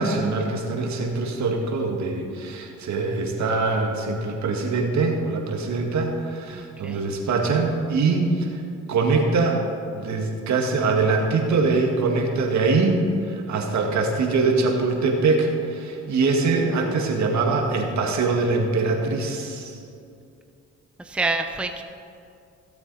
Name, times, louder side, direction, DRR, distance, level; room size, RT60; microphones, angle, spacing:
voice 1, 0.0-8.6 8.9-9.6 9.9-13.0 13.3-19.8, right 3 dB, 65° right, 2 dB, 1.9 m, -23 dB
voice 2, 6.5-7.0 21.1-21.8, right 3 dB, 5° right, 5 dB, 0.6 m, -27 dB
16.0 x 8.0 x 4.1 m, 2.5 s
cardioid pair, 90°, 30 cm